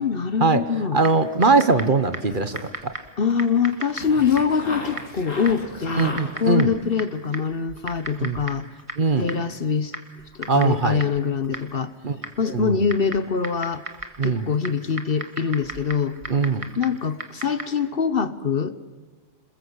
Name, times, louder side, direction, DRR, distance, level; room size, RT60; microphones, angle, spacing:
voice 1, 0.0-1.0 3.2-8.7 9.2-9.9 10.3-11.9 12.4-13.8 14.2-16.2 16.7-18.8, left 6 dB, 50° left, 14 dB, 1.1 m, -24 dB
voice 2, 0.9-2.6 2.8-2.9 6.0-6.7 8.2-8.4 9.0-9.3 10.5-11.0 12.0-12.2 12.5-12.8 14.2-14.5 16.3-16.6, right 4 dB, 40° right, 11 dB, 1.3 m, -20 dB
Typing, 1.0-17.9, right 2 dB, 25° right, 1.9 m, -39 dB
sound 1, 2.2-2.9 3.9-6.7, left 2 dB, 80° left, 3.4 m, -36 dB
27.5 x 21.5 x 8.0 m, 1.3 s
omnidirectional pair, 1.3 m